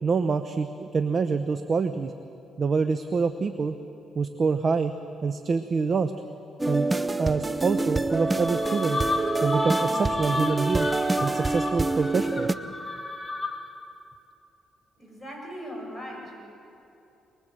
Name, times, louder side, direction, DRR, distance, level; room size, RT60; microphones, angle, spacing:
voice 1, 0.0-2.1 2.6-3.8 4.2-4.9 5.2-6.1 6.7-6.9 7.2-9.0 9.4-10.9 11.2-12.6, right 4 dB, 45° right, 9 dB, 0.9 m, -26 dB
sound 1, 6.6-12.5, right 2 dB, 15° right, 0.7 m, -26 dB
sound 2, 8.1-13.8, left 3 dB, 20° left, 2.3 m, -33 dB
voice 2, 15.0-16.4, equal, ahead, -2 dB, 7.1 m, -39 dB
23.5 x 21.0 x 7.8 m, 2.8 s
cardioid pair, 90°, 0 cm